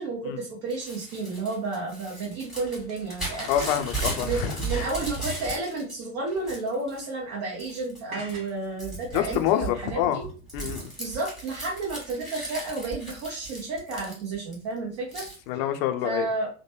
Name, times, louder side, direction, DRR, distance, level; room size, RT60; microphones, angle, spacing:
voice 1, 0.0-3.7 4.2-10.2 11.0-15.2 16.0-16.5, right 3 dB, 45° right, -3 dB, 1.0 m, -32 dB
Crumpling crinkling / Tearing, 0.7-5.9 6.3-7.1 7.6-8.0 8.3-14.5 15.1-15.4, right 2 dB, ahead, 1.4 m, -36 dB
voice 2, 3.5-4.9 9.1-10.2 10.5-10.8 15.5-16.3, left 11 dB, 45° left, 8 dB, 0.5 m, -27 dB
sound 1, 5.0-5.7 8.1-8.6, right 1 dB, 80° right, 0.9 m, -42 dB
3.1 x 2.2 x 2.9 m, 0.38 s
figure-of-eight pair, 80°, 42 cm